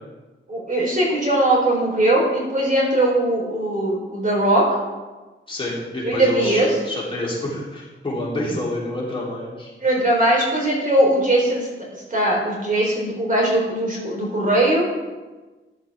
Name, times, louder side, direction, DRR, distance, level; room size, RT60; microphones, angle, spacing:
voice 1, 0.5-4.8 6.0-6.8 9.8-11.7 12.1-14.9, right 1 dB, 40° right, -3 dB, 4.2 m, -20 dB
voice 2, 5.5-9.7, left 1 dB, 25° left, -6 dB, 3.6 m, -28 dB
14.5 x 10.5 x 3.7 m, 1.2 s
wide cardioid pair, 115°, 21 cm